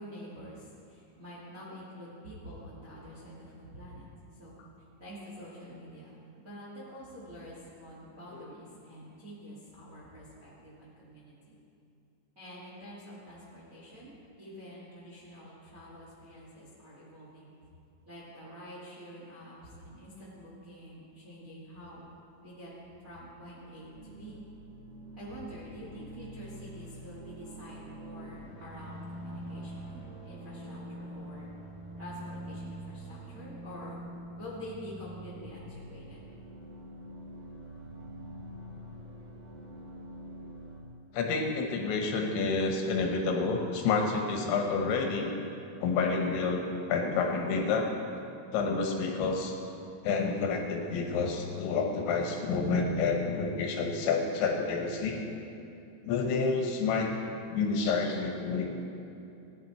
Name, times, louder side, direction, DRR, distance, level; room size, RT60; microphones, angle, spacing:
voice 1, 0.0-4.1 4.4-4.6 5.0-11.5 12.3-17.5 18.0-22.0 22.4-22.7 23.0-24.4 25.1-31.5 32.0-34.0 34.3-36.2, equal, 30° right, -7 dB, 1.6 m, -47 dB
sound 1, 23.9-40.8, right 1 dB, 60° right, 1.5 m, -45 dB
voice 2, 41.1-45.3 45.8-48.0 48.5-49.5 50.0-55.3 56.1-57.1 57.5-58.7, left 4 dB, 75° left, 2 dB, 3.2 m, -29 dB
18.0 x 10.0 x 4.5 m, 2.8 s
omnidirectional pair, 5.5 m